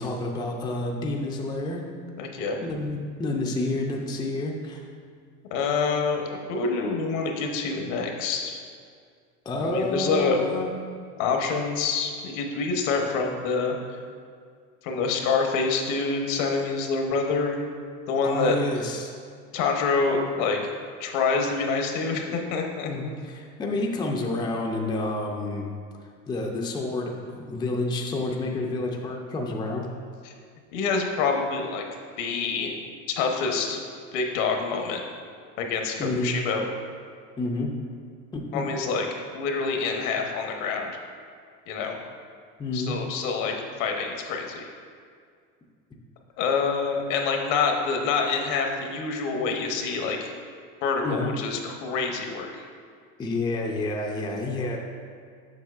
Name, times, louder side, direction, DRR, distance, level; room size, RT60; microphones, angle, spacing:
voice 1, 0.0-1.8 2.6-4.8 9.5-10.7 18.2-19.1 22.8-25.7 26.3-29.9 36.0-36.3 37.4-37.7 38.3-38.6 42.6-43.0 51.0-51.3 53.2-54.8, left 2 dB, 10° left, 0 dB, 0.4 m, -29 dB
voice 2, 2.2-2.6 5.5-8.6 9.6-10.4 11.2-14.0 14.8-17.7 18.1-18.8 19.5-20.6 21.0-22.9 30.2-30.3 30.7-31.9 32.2-32.7 33.1-33.8 34.1-35.0 35.6-36.6 38.5-39.1 39.3-40.9 41.7-42.0 42.7-44.7 46.4-50.3 50.8-52.6, left 4 dB, 75° left, 2 dB, 1.0 m, -26 dB
7.2 x 5.9 x 2.4 m, 2.1 s
supercardioid pair, 120°, 39 cm